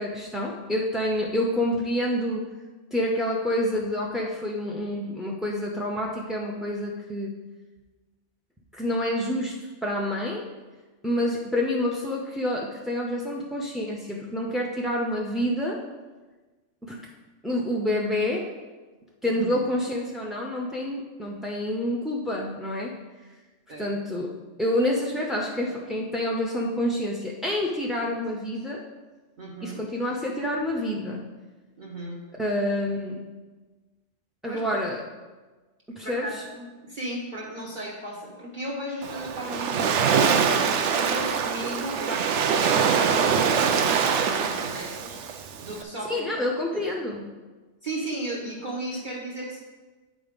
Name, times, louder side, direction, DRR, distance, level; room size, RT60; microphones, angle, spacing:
voice 1, 0.0-2.4 2.9-7.3 8.7-9.5 9.8-10.4 11.0-15.8 16.8-17.0 17.4-18.5 19.2-22.9 23.8-24.3 24.6-28.8 29.6-31.2 32.4-33.2 34.4-35.0 36.0-36.4 46.1-47.3, left 1 dB, ahead, -2 dB, 0.4 m, -28 dB
voice 2, 19.2-19.6 23.7-23.9 29.4-29.8 31.8-32.2 34.5-34.8 36.0-40.2 40.9-45.2 45.6-46.3 46.7-46.9 47.8-49.6, right 1 dB, 45° right, -4 dB, 1.2 m, -35 dB
Waves surf, 39.0-45.8, right 6 dB, 75° right, 0.9 m, -24 dB
8.7 x 3.9 x 5.2 m, 1.3 s
omnidirectional pair, 1.2 m